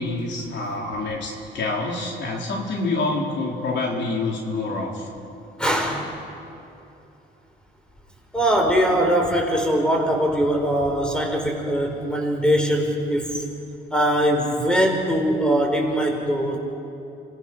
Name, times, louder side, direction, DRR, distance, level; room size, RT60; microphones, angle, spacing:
voice 1, 0.0-5.1, left 2 dB, 65° left, -1 dB, 4.0 m, -27 dB
voice 2, 5.6-6.0 8.3-13.4 13.9-16.6, equal, 5° left, 2 dB, 4.8 m, -21 dB
27.5 x 20.5 x 6.3 m, 2.7 s
cardioid pair, 90°, 20 cm